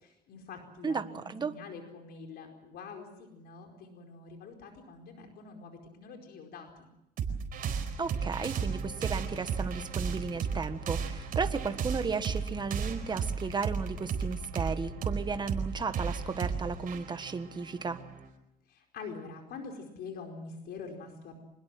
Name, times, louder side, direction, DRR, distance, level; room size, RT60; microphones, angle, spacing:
voice 1, 0.0-6.9 18.7-21.4, left 4 dB, 70° left, 3 dB, 4.7 m, -45 dB
voice 2, 0.8-1.5 8.0-18.0, right 5 dB, 25° right, 9 dB, 1.5 m, -34 dB
sound 1, 7.2-18.3, right 6 dB, 60° right, 4.4 m, -34 dB
25.5 x 21.0 x 7.7 m, 0.85 s
cardioid pair, 110°, 17 cm